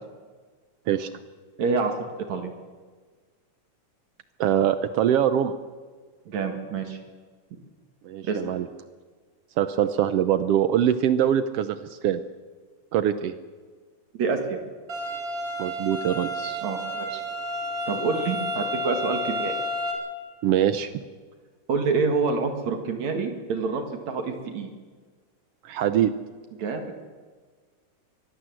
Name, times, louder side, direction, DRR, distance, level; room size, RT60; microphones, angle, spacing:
voice 1, 1.6-1.9 2.3-2.5 6.3-7.0 8.2-8.5 14.2-14.6 16.6-17.2 17.9-19.5 21.7-24.7 26.6-26.9, right 4 dB, 60° right, 5 dB, 2.9 m, -27 dB
voice 2, 4.4-5.5 8.0-8.7 9.6-12.2 12.9-13.3 15.6-16.6 20.4-20.9 25.6-26.1, right 10 dB, 90° right, 11 dB, 1.3 m, -23 dB
sound 1, 14.9-19.9, equal, 25° right, 5.9 m, -31 dB
24.0 x 18.0 x 7.7 m, 1.5 s
omnidirectional pair, 3.8 m